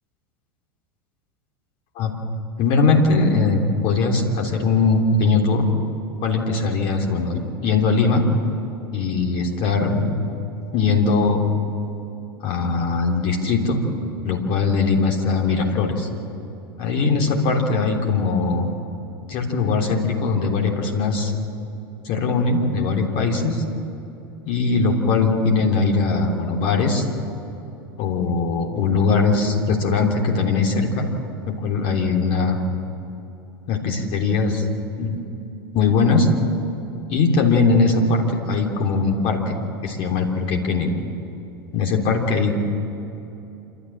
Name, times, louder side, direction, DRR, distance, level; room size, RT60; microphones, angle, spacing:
voice 1, 2.6-5.7 6.2-8.2 8.9-10.1 10.7-11.4 12.4-13.8 14.2-16.1 16.8-18.7 19.3-21.3 22.0-23.6 24.4-27.0 28.0-31.1 31.5-32.6 33.7-34.6 35.0-35.2 35.7-36.3 37.1-39.6 39.8-40.9 41.7-42.5, left 4 dB, 45° left, 2 dB, 3.4 m, -20 dB
28.0 x 13.0 x 7.4 m, 2.9 s
figure-of-eight pair, 80°, 12 cm